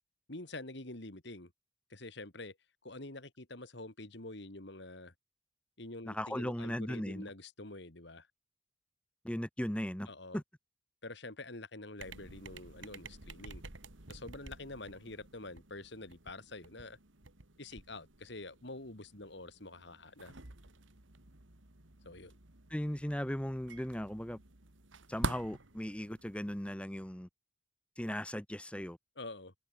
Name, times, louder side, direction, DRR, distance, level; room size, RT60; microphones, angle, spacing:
voice 1, 0.3-1.5 1.9-2.6 2.8-5.1 5.8-8.3 10.1-10.4 11.0-13.6 14.1-17.0 17.6-20.3 22.0-22.4 29.2-29.5, left 2 dB, 60° left, 2.7 m, -47 dB
voice 2, 6.0-7.3 9.2-10.1 10.3-10.4 22.7-24.4 25.1-27.3 28.0-29.0, equal, 5° left, 1.1 m, -37 dB
sound 1, 12.0-26.7, right 2 dB, 75° right, 2.6 m, -48 dB
head